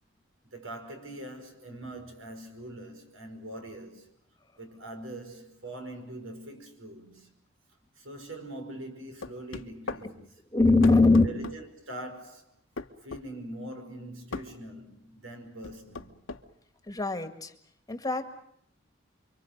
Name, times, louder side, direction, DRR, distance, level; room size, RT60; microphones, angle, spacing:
voice 1, 0.4-4.1 4.5-7.3 8.0-10.3 11.2-12.5 13.0-16.1, right 1 dB, 80° right, 5.3 m, -43 dB
sound 1, 9.2-10.1 10.8-11.6 12.8-13.3 14.3-14.5 15.6-16.4, left 3 dB, 85° left, 1.2 m, -37 dB
voice 2, 10.5-11.2 16.9-17.5 17.9-18.3, left 3 dB, 20° left, 1.8 m, -21 dB
29.5 x 24.5 x 6.6 m
head